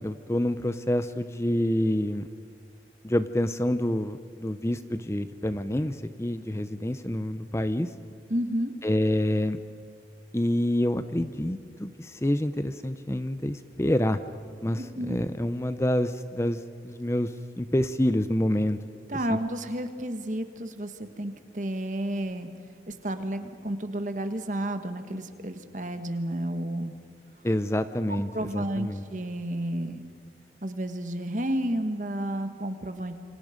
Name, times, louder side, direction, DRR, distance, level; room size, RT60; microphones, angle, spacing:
voice 1, 0.0-2.3 3.0-7.9 8.8-9.6 10.3-14.2 14.6-17.3 17.6-18.8 19.3-19.4 27.4-29.0, left 1 dB, 15° left, 11 dB, 0.6 m, -27 dB
voice 2, 8.3-8.7 14.8-15.2 19.1-22.5 22.9-26.9 28.3-30.0 30.6-33.2, right 1 dB, 45° right, 8 dB, 1.6 m, -31 dB
28.5 x 25.5 x 5.2 m, 2.5 s
head